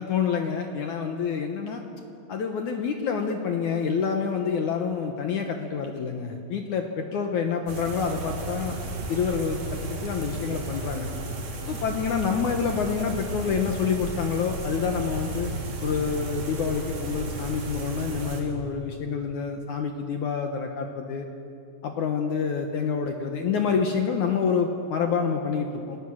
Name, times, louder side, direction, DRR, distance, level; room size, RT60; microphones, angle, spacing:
voice 1, 0.0-1.8 2.3-8.7 9.1-11.1 11.7-15.5 15.8-21.3 21.8-26.0, left 6 dB, 70° left, 4 dB, 1.9 m, -27 dB
sound 1, 7.7-18.4, right 2 dB, 55° right, 4.2 m, -34 dB
28.0 x 19.0 x 6.4 m, 2.6 s
omnidirectional pair, 5.0 m